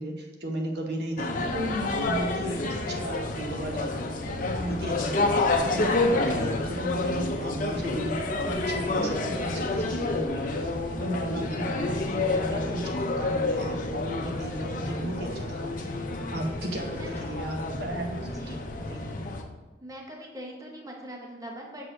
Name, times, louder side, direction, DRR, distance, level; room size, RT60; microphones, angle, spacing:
voice 1, 0.0-5.2 5.7-10.5 11.0-15.7 16.3-18.6 18.9-19.0, right 1 dB, 65° right, 2 dB, 0.9 m, -35 dB
sound 1, 1.2-19.4, left 2 dB, 50° left, 0.6 m, -29 dB
voice 2, 9.0-9.5 10.2-10.4 11.3-11.6 14.7-14.8 16.7-17.1 18.2-18.6 19.8-21.9, equal, 20° right, 0 dB, 0.7 m, -43 dB
6.4 x 6.0 x 2.6 m, 1.2 s
head